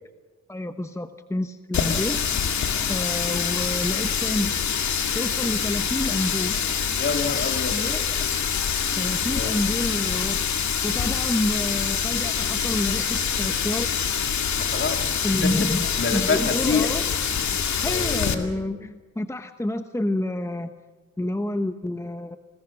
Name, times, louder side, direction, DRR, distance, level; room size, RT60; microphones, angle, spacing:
voice 1, 0.5-2.2 2.9-4.5 5.1-6.6 7.7-8.3 9.0-10.4 10.8-13.9 15.2-17.1 17.5-20.7 21.2-22.4, left 1 dB, 10° left, 8 dB, 1.1 m, -28 dB
Water tap faucet, 1.7-18.3, left 7 dB, 65° left, 2.3 m, -25 dB
voice 2, 7.0-7.8 9.3-9.5 14.6-15.1 15.4-15.7 16.0-16.9 17.8-18.5, left 4 dB, 40° left, 5 dB, 2.9 m, -27 dB
28.5 x 21.0 x 6.1 m, 1.3 s
cardioid pair, 80°, 30 cm